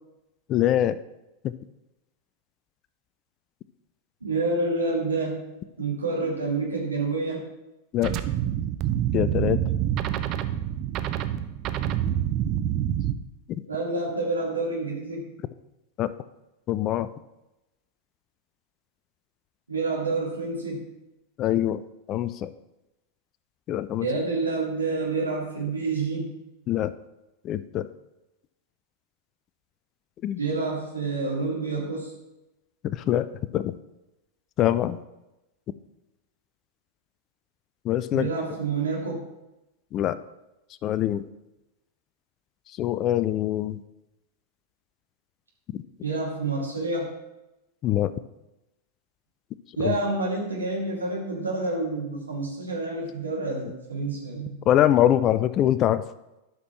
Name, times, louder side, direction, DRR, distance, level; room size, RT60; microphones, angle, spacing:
voice 1, 0.5-1.0 7.9-8.1 9.1-9.6 13.5-13.6 16.0-16.1 16.7-17.1 21.4-21.8 22.1-22.5 23.7-24.1 26.7-26.9 27.4-27.9 30.2-30.4 32.8-33.3 33.5-33.8 34.6-35.0 37.8-38.3 39.9-40.2 40.8-41.2 42.8-43.8 45.7-45.8 47.8-48.1 49.8-50.0 54.7-56.1, left 12 dB, 35° left, 16 dB, 0.4 m, -23 dB
voice 2, 4.2-5.5 5.8-7.5 13.7-15.3 19.7-20.9 24.0-26.3 30.4-32.1 38.1-39.2 46.0-47.1 49.8-54.6, right 3 dB, 80° right, -3 dB, 2.3 m, -28 dB
sound 1, 8.0-13.1, right 11 dB, 35° right, 0.5 m, -27 dB
12.5 x 6.0 x 3.1 m, 0.94 s
figure-of-eight pair, 90°, 0 cm